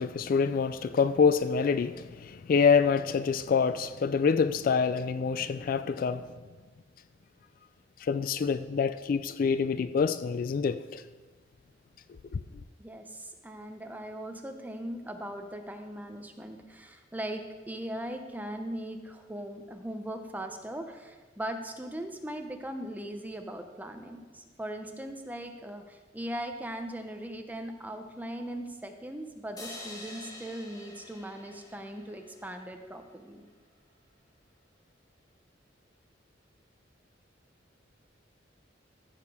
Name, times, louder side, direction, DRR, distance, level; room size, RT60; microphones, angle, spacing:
voice 1, 0.0-6.2 8.1-11.0 12.3-12.4, left 5 dB, 50° left, 0.3 m, -26 dB
voice 2, 12.8-33.4, right 1 dB, 10° right, 0.7 m, -39 dB
sound 1, 29.6-32.9, left 2 dB, 20° left, 1.7 m, -47 dB
14.5 x 5.0 x 4.8 m
head